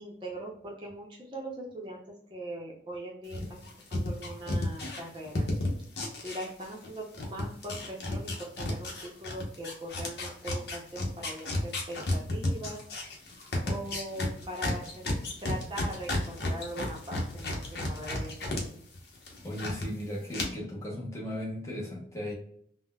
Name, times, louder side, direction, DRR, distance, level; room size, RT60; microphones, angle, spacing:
voice 1, 0.0-2.0 2.3-3.6 3.9-5.5 6.2-12.8 13.3-15.1 15.4-18.8, right 1 dB, 25° right, -2 dB, 0.6 m, -41 dB
sound 1, 3.3-6.9 7.1-18.6 18.9-19.9 20.3-20.4, left 1 dB, 70° left, 0.8 m, -32 dB
voice 2, 19.4-22.3, left 1 dB, 15° left, -3 dB, 0.8 m, -36 dB
3.8 x 2.1 x 2.2 m, 0.66 s
head